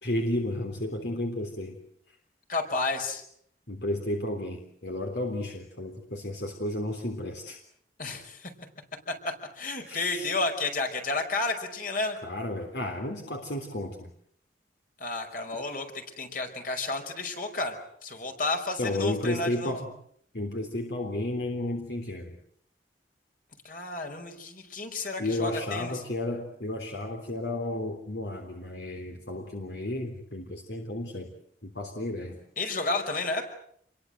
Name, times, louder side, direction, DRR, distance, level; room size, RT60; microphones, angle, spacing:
voice 1, 0.0-1.8 3.7-7.6 9.9-10.4 12.2-14.1 18.8-19.9 20.3-22.4 25.2-31.3 31.6-32.4, left 1 dB, 70° left, 3 dB, 3.5 m, -32 dB
voice 2, 2.5-3.2 8.0-8.5 9.1-12.2 15.0-17.8 18.0-19.7 23.6-25.9 32.6-33.4, left 3 dB, 50° left, 5 dB, 5.3 m, -31 dB
28.5 x 22.5 x 7.9 m, 0.66 s
head